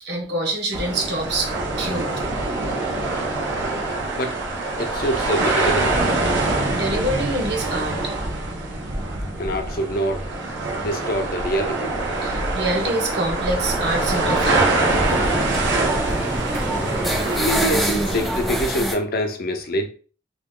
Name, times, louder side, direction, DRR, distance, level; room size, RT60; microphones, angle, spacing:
voice 1, 0.0-2.1 6.7-8.0 12.2-14.7, right 1 dB, 60° right, 1 dB, 1.0 m, -26 dB
sound 1, 0.7-18.7, right 2 dB, 85° right, 0.9 m, -24 dB
voice 2, 4.8-6.0 9.4-10.2 10.8-11.9 17.3-19.9, equal, 55° left, 6 dB, 0.6 m, -25 dB
sound 2, 13.6-18.9, right 1 dB, ahead, 0.4 m, -27 dB
3.0 x 2.7 x 3.7 m, 0.40 s
head